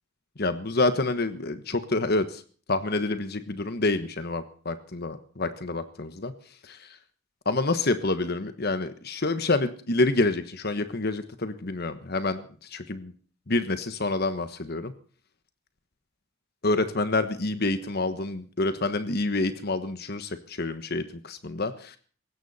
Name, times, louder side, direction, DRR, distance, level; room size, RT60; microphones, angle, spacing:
voice 1, 0.4-2.4 2.7-6.3 6.6-6.9 7.4-12.4 12.7-13.1 13.5-14.9 16.6-22.0, left 2 dB, 50° left, 10 dB, 1.3 m, -27 dB
20.0 x 16.5 x 4.2 m, 0.43 s
head